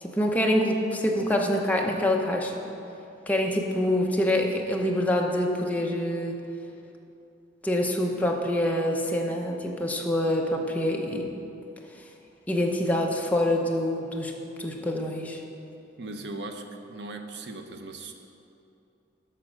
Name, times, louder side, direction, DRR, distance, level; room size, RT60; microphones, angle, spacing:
voice 1, 0.0-2.7 3.3-6.4 7.6-11.3 12.5-14.3 14.6-15.4, left 1 dB, 10° left, 0 dB, 0.8 m, -26 dB
voice 2, 16.0-18.1, right 2 dB, 65° right, 5 dB, 0.8 m, -38 dB
12.5 x 4.4 x 6.3 m, 2.7 s
head